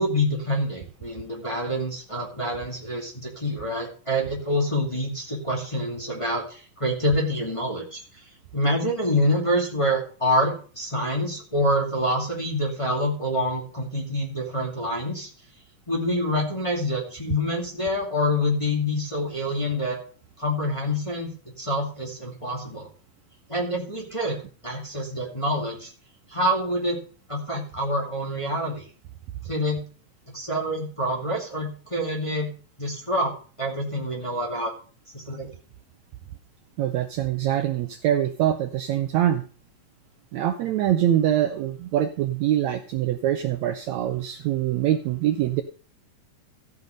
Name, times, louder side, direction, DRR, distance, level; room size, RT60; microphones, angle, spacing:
voice 1, 0.0-8.0 8.5-15.3 15.9-20.0 20.4-21.3 21.6-22.9 23.5-24.4 24.6-25.9 26.3-27.0 27.3-28.8 29.4-29.8 30.3-32.5 32.8-33.3 33.6-34.7 35.1-35.5, equal, 10° left, -3 dB, 2.1 m, -26 dB
voice 2, 36.8-39.4 40.3-45.6, right 11 dB, 75° right, 7 dB, 1.8 m, -24 dB
15.0 x 6.0 x 5.1 m, 0.39 s
omnidirectional pair, 3.8 m